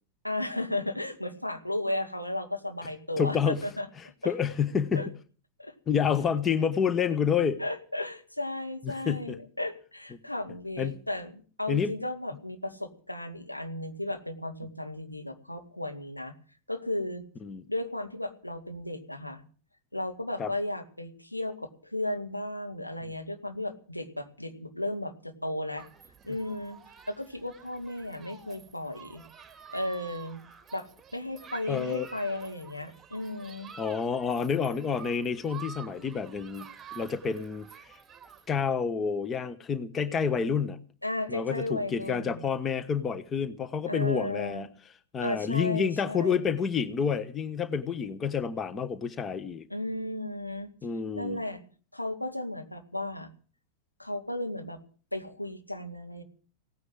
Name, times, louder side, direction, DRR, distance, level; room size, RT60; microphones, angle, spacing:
voice 1, 0.2-3.9 4.2-4.3 4.9-5.1 5.6-5.7 7.6-16.3 16.7-17.3 17.7-19.4 19.9-25.9 26.2-29.2 29.7-30.4 30.7-33.7 41.0-42.4 43.9-44.7 45.2-46.5 49.7-50.7 51.1-51.6 51.9-53.3 54.0-54.8 55.1-56.2, left 1 dB, 85° left, 2.1 m, -34 dB
voice 2, 3.2-3.7 4.0-5.1 5.9-7.6 8.8-9.4 10.1-10.2 10.8-11.0 11.7-11.9 17.4-17.6 20.4-20.5 31.7-32.1 33.8-38.0 38.5-40.8 41.3-44.7 45.1-49.7 50.8-51.4, left 6 dB, 25° left, 1.1 m, -29 dB
Human group actions, 25.8-38.5, right 7 dB, 20° right, 1.7 m, -49 dB
17.5 x 9.7 x 7.8 m
figure-of-eight pair, 90°, 0 cm